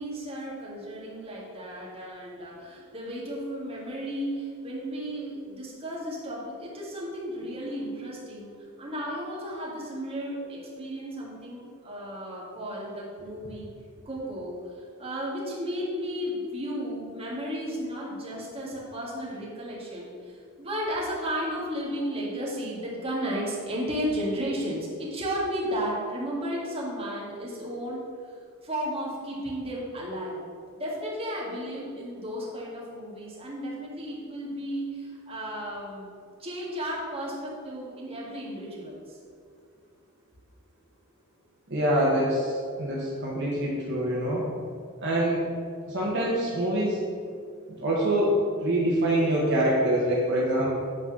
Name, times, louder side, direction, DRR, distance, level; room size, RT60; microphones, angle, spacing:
voice 1, 0.0-13.7 14.1-14.6 15.0-28.0 28.6-30.4 30.8-36.1 36.4-39.2, equal, 25° right, -5 dB, 1.9 m, -34 dB
voice 2, 41.7-44.5 45.0-45.5 45.9-47.0 47.8-50.7, right 1 dB, 55° right, -5 dB, 1.4 m, -25 dB
9.0 x 4.1 x 6.1 m, 2.2 s
head